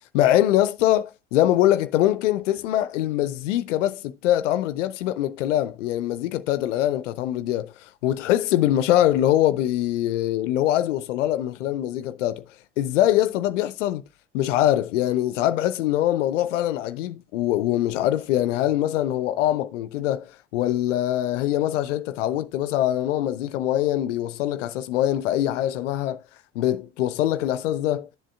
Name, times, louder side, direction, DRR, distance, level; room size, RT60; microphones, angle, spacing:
voice 1, 0.1-12.4 12.8-14.0 14.3-26.2 26.6-28.1, left 13 dB, 75° left, 0.5 m, -23 dB
12.5 x 7.4 x 2.4 m
figure-of-eight pair, 60°, 37 cm